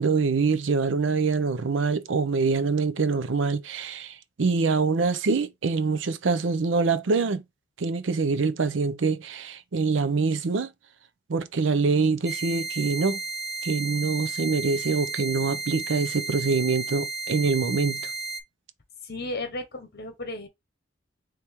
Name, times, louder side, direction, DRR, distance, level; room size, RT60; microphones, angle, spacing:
voice 1, 0.0-7.4 7.8-10.7 11.3-13.2 13.6-18.1, right 4 dB, 70° right, 0.5 m, -25 dB
sound 1, 12.3-18.4, right 4 dB, ahead, 0.6 m, -33 dB
voice 2, 19.0-20.5, left 2 dB, 55° left, 1.3 m, -34 dB
4.4 x 3.3 x 3.4 m
head